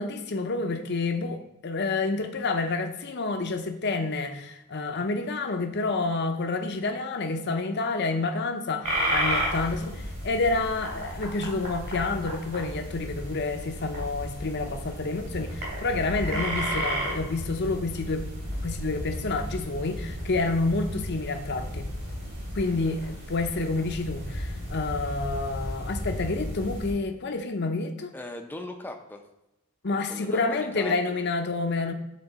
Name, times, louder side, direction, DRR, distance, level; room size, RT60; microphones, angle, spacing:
voice 1, 0.0-18.3 18.6-21.9 22.5-28.1 29.8-31.9, left 3 dB, 50° left, 5 dB, 0.6 m, -29 dB
sound 1, 8.8-26.9, equal, 55° right, 2.8 m, -33 dB
voice 2, 28.1-29.2 29.9-31.2, left 1 dB, 10° left, 3 dB, 0.5 m, -39 dB
9.3 x 3.9 x 3.9 m, 0.90 s
head